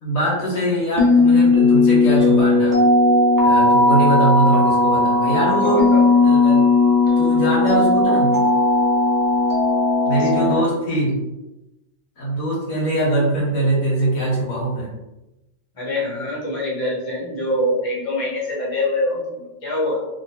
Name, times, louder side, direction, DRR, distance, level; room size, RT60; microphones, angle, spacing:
voice 1, 0.0-2.8 3.4-5.9 6.2-6.7 7.2-8.4 10.0-11.2 12.2-14.9, right 1 dB, 85° left, -7 dB, 1.7 m, -22 dB
sound 1, 1.0-10.6, left 2 dB, 20° right, 0.6 m, -16 dB
voice 2, 5.6-6.0 10.1-10.7 15.8-20.0, left 1 dB, 25° left, -6 dB, 1.0 m, -25 dB
3.0 x 2.9 x 2.7 m, 0.97 s
omnidirectional pair, 1.4 m